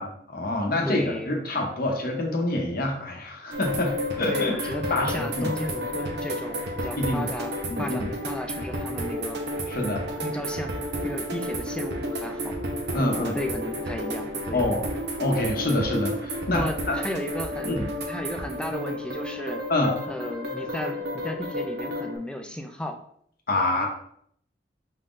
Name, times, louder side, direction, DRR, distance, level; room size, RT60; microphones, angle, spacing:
voice 1, 0.0-5.5 7.0-7.3 7.7-8.1 9.7-10.1 12.9-13.3 14.5-14.8 15.2-17.0 17.6-17.9 19.7-20.0 23.5-23.9, left 1 dB, 55° left, 1 dB, 0.8 m, -27 dB
voice 2, 0.8-1.3 4.3-9.4 10.2-10.7 11.0-12.6 13.0-14.7 16.5-17.8 18.1-19.6 20.1-23.0, left 1 dB, 5° left, 4 dB, 0.4 m, -34 dB
sound 1, 3.5-22.2, equal, 65° right, 0.8 m, -31 dB
5.5 x 3.6 x 2.5 m, 0.65 s
head